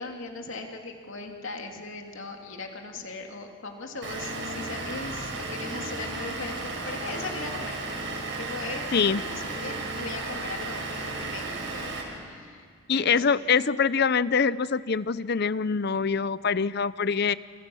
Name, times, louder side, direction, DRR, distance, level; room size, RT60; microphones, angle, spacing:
voice 1, 0.0-7.8 8.4-12.7 12.9-13.4, left 3 dB, 70° left, 2 dB, 2.9 m, -39 dB
Vehicle / Engine, 4.0-12.0, right 2 dB, 60° right, 6.1 m, -34 dB
voice 2, 12.9-17.4, left 5 dB, 50° left, 16 dB, 0.6 m, -24 dB
30.0 x 29.0 x 6.4 m, 2.1 s
head